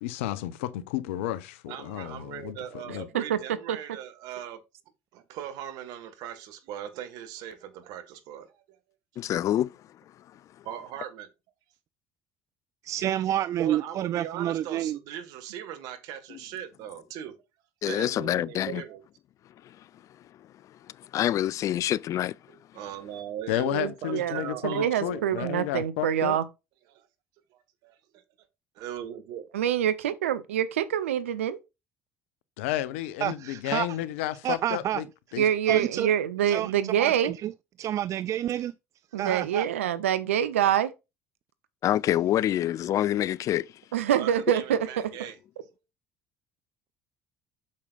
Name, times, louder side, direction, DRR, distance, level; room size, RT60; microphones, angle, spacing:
voice 1, 0.0-2.6 2.9-3.0 23.5-26.4 32.6-35.1 35.3-35.4, left 14 dB, 75° left, 0.7 m, -32 dB
voice 2, 1.7-4.6 5.1-8.6 10.6-11.3 13.6-17.3 17.8-19.0 22.7-25.7 26.9-27.1 27.5-28.0 28.7-29.5 44.1-45.4, right 10 dB, 65° right, 1.6 m, -39 dB
voice 3, 9.2-9.7 17.8-18.8 21.1-22.3 41.8-43.7, left 12 dB, 50° left, 0.3 m, -26 dB
voice 4, 12.8-15.0 33.2-34.0 34.4-35.0 35.7-36.1 36.5-37.5 37.8-38.7 39.2-39.7, right 12 dB, 50° right, 0.4 m, -29 dB
voice 5, 23.7-24.3 24.6-26.5 29.5-31.6 35.4-37.3 39.1-40.9 43.9-45.1, right 10 dB, 85° right, 0.8 m, -25 dB
8.3 x 6.6 x 2.4 m
hypercardioid pair, 65°, 7 cm